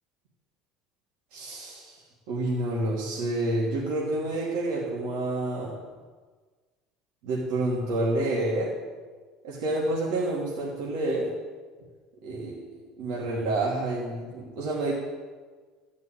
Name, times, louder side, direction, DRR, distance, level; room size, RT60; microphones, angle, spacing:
voice 1, 1.3-2.0 2.3-5.8 7.2-8.7 9.4-11.3 12.2-12.6 13.0-14.9, right 2 dB, 70° right, -5 dB, 2.9 m, -28 dB
15.0 x 6.1 x 9.1 m, 1.5 s
cardioid pair, 165°, 0 cm